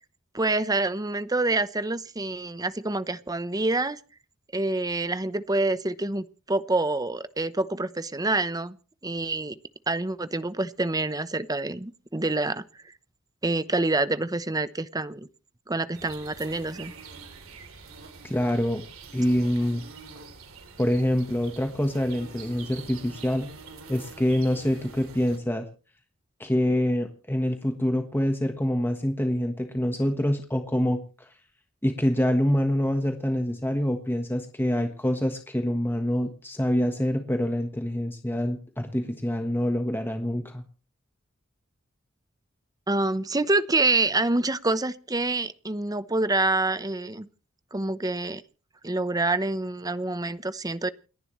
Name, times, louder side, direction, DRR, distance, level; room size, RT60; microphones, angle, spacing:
voice 1, 0.3-4.0 4.5-8.8 9.0-9.6 9.9-12.9 13.4-15.3 15.7-16.9 42.9-47.3 47.7-48.4 48.8-50.9, right 2 dB, 20° right, 13 dB, 0.9 m, -27 dB
sound 1, 15.9-25.4, right 4 dB, 70° right, 3.4 m, -45 dB
voice 2, 18.2-18.8 19.1-19.8 20.8-23.5 23.9-25.7 26.4-31.3 31.8-40.6, equal, 10° left, 5 dB, 1.3 m, -26 dB
29.0 x 11.0 x 3.2 m, 0.36 s
head